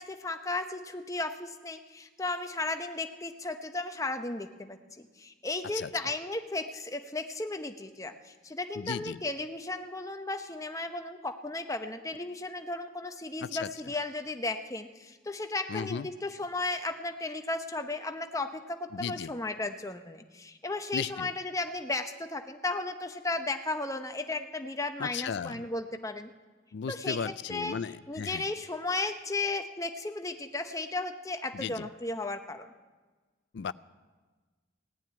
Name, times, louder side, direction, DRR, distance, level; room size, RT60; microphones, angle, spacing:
voice 1, 0.0-26.3 26.9-27.8 28.1-32.7, left 2 dB, 15° left, 7 dB, 0.7 m, -35 dB
voice 2, 8.8-9.2 13.4-13.7 15.7-16.1 18.9-19.3 20.9-21.3 25.0-25.7 26.7-28.5 31.5-31.9 33.5-33.7, left 6 dB, 60° left, 18 dB, 0.4 m, -35 dB
16.5 x 7.5 x 9.5 m, 1.3 s
head